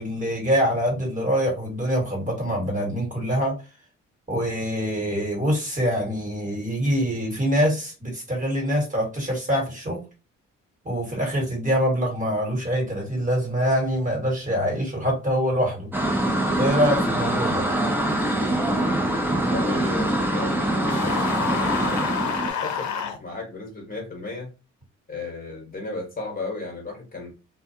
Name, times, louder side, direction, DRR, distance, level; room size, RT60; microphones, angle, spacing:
voice 1, 0.0-3.6 4.3-10.0 10.8-15.9 16.6-17.7, equal, 25° right, 0 dB, 1.4 m, -24 dB
sound 1, 15.9-22.5, right 1 dB, 5° right, 0.7 m, -24 dB
voice 2, 19.5-22.0 22.4-24.5 25.1-27.3, left 3 dB, 30° left, 0 dB, 1.2 m, -35 dB
sound 2, 20.9-23.2, left 7 dB, 70° left, 0.7 m, -28 dB
2.3 x 2.3 x 2.7 m, 0.30 s
cardioid pair, 90°, 30 cm